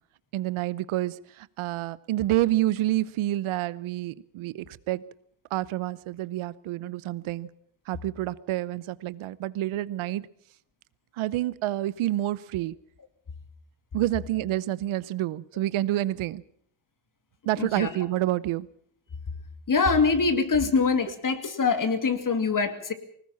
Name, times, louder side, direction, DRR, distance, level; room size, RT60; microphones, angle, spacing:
voice 1, 0.3-5.0 5.5-7.5 7.9-10.3 11.2-12.7 13.9-16.4 17.5-18.7, right 15 dB, 85° right, 0.9 m, -28 dB
voice 2, 17.6-17.9 19.7-22.9, left 4 dB, 40° left, 2.6 m, -24 dB
20.5 x 19.0 x 7.1 m
cardioid pair, 80°, 48 cm